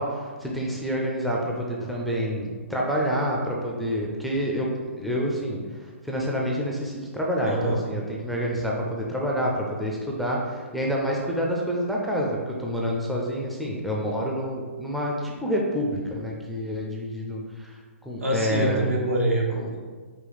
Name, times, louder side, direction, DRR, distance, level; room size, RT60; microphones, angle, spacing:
voice 1, 0.0-5.6 6.0-19.0 19.6-19.7, equal, ahead, -4 dB, 0.5 m, -28 dB
voice 2, 7.4-7.8 18.2-19.8, right 1 dB, 80° right, -1 dB, 1.1 m, -25 dB
5.0 x 2.3 x 4.0 m, 1.5 s
hypercardioid pair, 130°, 7 cm